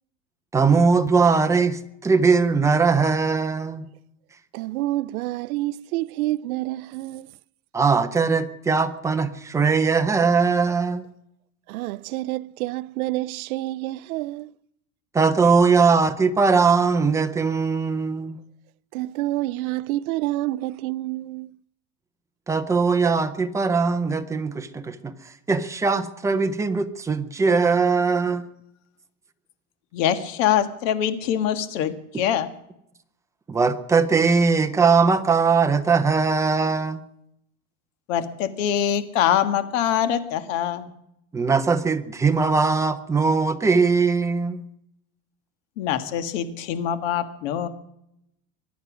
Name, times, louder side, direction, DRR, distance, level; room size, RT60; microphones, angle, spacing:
voice 1, 0.5-3.9 7.7-11.0 15.1-18.4 22.5-25.1 25.5-28.5 33.5-37.0 41.3-44.6, right 4 dB, 5° right, 0.5 m, -20 dB
voice 2, 4.5-7.3 11.7-14.5 18.9-21.6, right 17 dB, 90° right, 0.5 m, -28 dB
voice 3, 29.9-32.5 38.1-40.9 45.8-47.7, left 10 dB, 65° left, 1.7 m, -24 dB
23.5 x 9.4 x 6.1 m
supercardioid pair, 155°, 42 cm